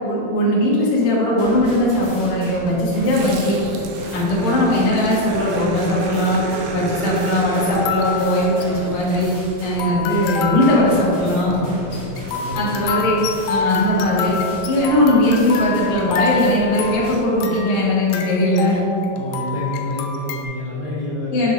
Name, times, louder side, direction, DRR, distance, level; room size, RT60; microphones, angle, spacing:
voice 1, 0.0-3.6 4.1-6.4 6.7-9.3 9.6-11.6 12.5-13.2 13.5-14.4 14.7-18.8 21.3-21.5, left 1 dB, 60° left, -5 dB, 1.5 m, -19 dB
sound 1, 1.4-17.2, right 1 dB, 45° right, 1.5 m, -36 dB
Growling, 3.1-9.8, right 3 dB, 85° right, 2.4 m, -30 dB
sound 2, 4.7-5.2 6.0-6.1 7.7-20.5, left 6 dB, 85° left, 2.4 m, -27 dB
voice 2, 11.4-12.8 19.1-21.4, equal, 65° right, -11 dB, 0.9 m, -29 dB
7.4 x 6.2 x 3.1 m, 2.9 s
omnidirectional pair, 4.2 m